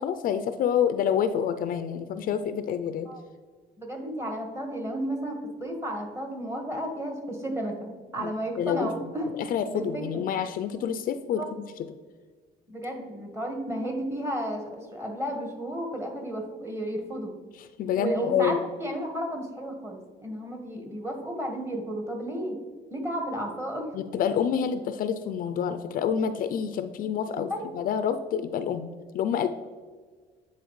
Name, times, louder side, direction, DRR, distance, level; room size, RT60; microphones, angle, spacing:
voice 1, 0.0-3.1 8.2-8.3 8.6-11.9 17.5-18.6 23.9-28.9 29.1-29.5, left 8 dB, 55° left, 10 dB, 0.4 m, -28 dB
voice 2, 3.8-9.3 9.7-10.2 11.4-11.5 12.7-17.3 18.0-22.6 22.9-23.9 27.5-27.6, right 1 dB, 15° right, 2 dB, 1.4 m, -33 dB
9.1 x 4.1 x 3.1 m, 1.5 s
cardioid pair, 110°, 17 cm